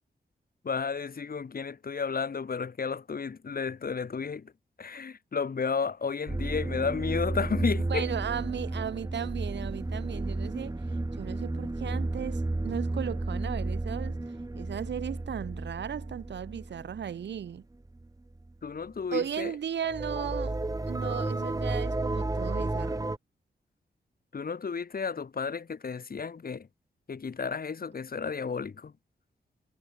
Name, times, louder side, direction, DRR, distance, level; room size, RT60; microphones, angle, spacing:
voice 1, 0.6-4.5 4.8-8.1 18.6-19.5 24.3-26.7 27.1-28.9, left 5 dB, 55° left, 2.8 m, -32 dB
sound 1, 6.3-17.6 17.9-18.1 18.3-18.5 19.8-23.2, right 2 dB, 20° right, 1.8 m, -32 dB
voice 2, 7.9-10.8 11.2-14.2 14.5-17.6 19.1-20.6 20.9-23.1, right 8 dB, 85° right, 1.2 m, -36 dB
cardioid pair, 80°, 18 cm